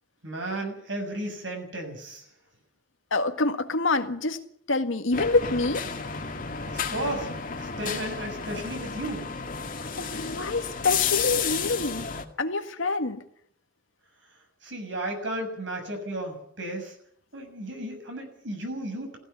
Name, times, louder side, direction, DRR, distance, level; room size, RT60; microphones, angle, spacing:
voice 1, 0.2-2.3 6.6-7.3 7.6-9.3 14.6-16.9 17.3-19.2, right 1 dB, 70° right, 4 dB, 7.0 m, -34 dB
voice 2, 3.1-4.4 4.7-5.9 10.0-12.1 12.4-13.2, left 3 dB, 90° left, 7 dB, 1.8 m, -26 dB
sound 1, 5.1-12.2, left 6 dB, 45° left, 2.0 m, -32 dB
17.0 x 15.5 x 9.9 m, 0.69 s
head